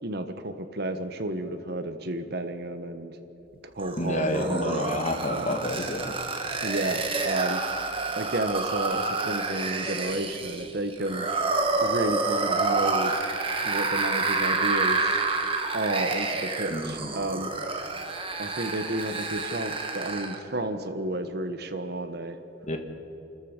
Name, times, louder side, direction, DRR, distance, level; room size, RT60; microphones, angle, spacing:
voice 1, 0.0-3.2 3.6-5.0 5.3-5.6 6.6-7.6 8.2-11.3 11.8-13.2 13.6-15.1 15.7-17.5 18.4-22.4, right 1 dB, 55° right, 9 dB, 1.3 m, -31 dB
sound 1, 3.8-20.4, right 3 dB, 30° right, 1.6 m, -29 dB
voice 2, 4.0-6.1 16.7-17.1 22.7-22.8, left 1 dB, 40° left, 5 dB, 1.7 m, -29 dB
29.0 x 13.5 x 6.7 m, 3.0 s
head